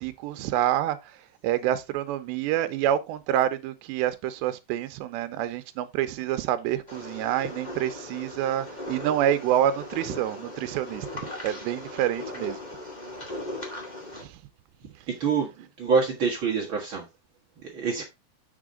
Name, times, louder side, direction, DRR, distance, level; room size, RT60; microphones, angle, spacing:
voice 1, 0.0-1.2 1.4-12.6 14.2-14.4, right 11 dB, 85° right, 3.0 m, -27 dB
sound 1, 6.9-14.2, left 1 dB, 15° left, 1.3 m, -38 dB
voice 2, 15.2-17.0 17.6-18.0, right 5 dB, 60° right, 1.3 m, -26 dB
7.2 x 7.0 x 3.7 m
omnidirectional pair, 4.9 m